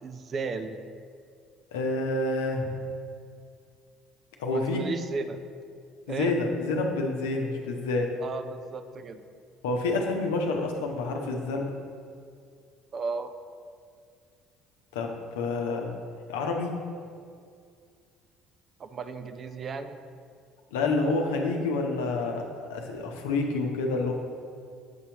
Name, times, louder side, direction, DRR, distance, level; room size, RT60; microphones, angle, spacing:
voice 1, 0.0-0.8 4.5-5.4 6.1-6.4 8.2-9.2 12.9-13.3 18.8-20.0, right 4 dB, 40° right, 9 dB, 0.4 m, -34 dB
voice 2, 1.7-2.7 4.4-4.9 6.1-8.1 9.6-11.7 14.9-15.9 16.3-16.7 20.7-24.1, left 3 dB, 70° left, 2 dB, 0.7 m, -28 dB
7.8 x 5.6 x 2.9 m, 2.2 s
figure-of-eight pair, 55°, 0 cm